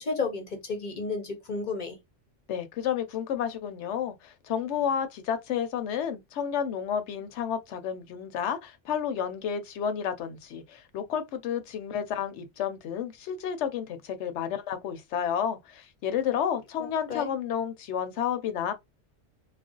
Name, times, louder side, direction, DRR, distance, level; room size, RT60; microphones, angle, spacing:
voice 1, 0.0-2.0 16.8-17.3, left 4 dB, 50° left, 0.7 m, -32 dB
voice 2, 2.5-18.7, left 8 dB, 75° left, 0.9 m, -31 dB
2.4 x 2.0 x 3.7 m
omnidirectional pair, 1.2 m